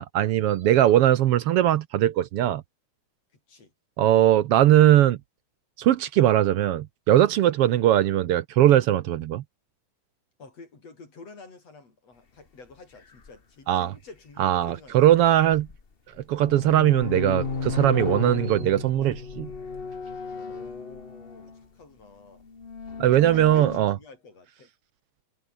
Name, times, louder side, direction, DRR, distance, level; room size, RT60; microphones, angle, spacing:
voice 1, 0.0-2.6 4.0-5.2 5.8-9.4 13.7-13.9 14.4-15.7 16.3-19.5 23.0-23.9, right 12 dB, 70° right, 1.4 m, -20 dB
voice 2, 10.4-15.1 20.2-22.5 23.1-24.7, left 3 dB, 55° left, 6.6 m, -49 dB
sound 1, 13.2-13.3 15.1-15.8 16.2-21.6 22.4-23.8, left 4 dB, 30° left, 1.0 m, -34 dB
omnidirectional pair, 3.4 m